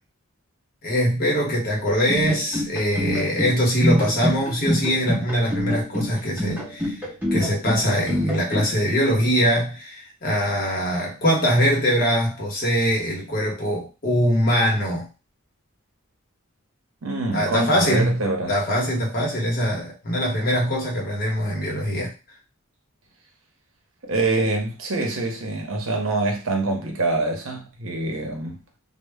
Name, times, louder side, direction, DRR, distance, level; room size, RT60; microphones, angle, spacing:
voice 1, 0.8-7.0 7.3-15.1 17.3-22.1, equal, 45° left, 0.9 m, -22 dB
sound 1, 1.9-8.7, equal, 10° right, 0.6 m, -26 dB
voice 2, 17.0-18.5 24.0-28.6, right 2 dB, 65° right, 0.7 m, -25 dB
2.0 x 2.0 x 3.3 m
head